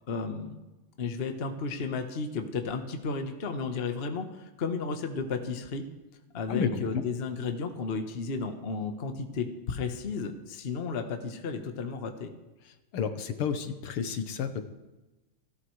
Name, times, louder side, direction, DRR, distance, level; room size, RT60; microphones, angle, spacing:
voice 1, 0.1-0.6 1.0-5.8 6.3-12.3, left 4 dB, 40° left, 6 dB, 1.0 m, -33 dB
voice 2, 6.5-7.0 12.9-14.6, left 6 dB, 80° left, 8 dB, 1.9 m, -31 dB
30.0 x 12.5 x 3.2 m, 1.1 s
omnidirectional pair, 2.4 m